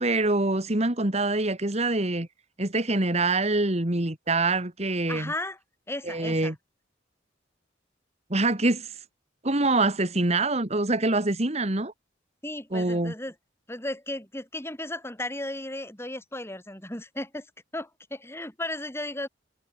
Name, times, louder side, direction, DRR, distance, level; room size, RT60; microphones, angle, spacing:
voice 1, 0.0-2.3 2.6-5.3 6.1-6.5 8.3-8.9 9.4-11.9 12.7-13.1, right 2 dB, 35° right, 2.1 m, -25 dB
voice 2, 5.1-5.6 5.9-6.5 12.4-13.4 13.7-17.5 17.7-19.3, left 1 dB, 15° left, 7.9 m, -35 dB
head